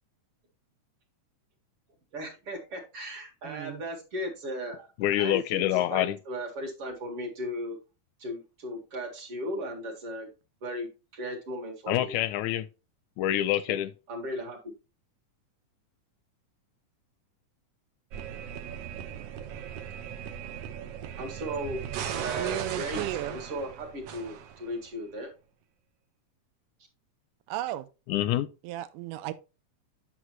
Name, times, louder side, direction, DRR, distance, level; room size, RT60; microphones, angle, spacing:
voice 1, 2.1-4.9 5.2-7.8 8.2-10.3 10.6-12.1 13.7-13.8 14.1-14.7 21.2-21.8 22.1-25.3, equal, 50° right, 2.6 m, -36 dB
voice 2, 3.4-3.8 22.4-23.4 27.5-27.9 28.6-29.3, right 13 dB, 90° right, 2.2 m, -34 dB
voice 3, 5.0-6.2 11.9-12.7 13.2-13.9 28.1-28.5, left 13 dB, 80° left, 1.8 m, -26 dB
sound 1, 18.1-24.9, right 9 dB, 70° right, 1.5 m, -38 dB
9.5 x 6.1 x 3.1 m
omnidirectional pair, 3.6 m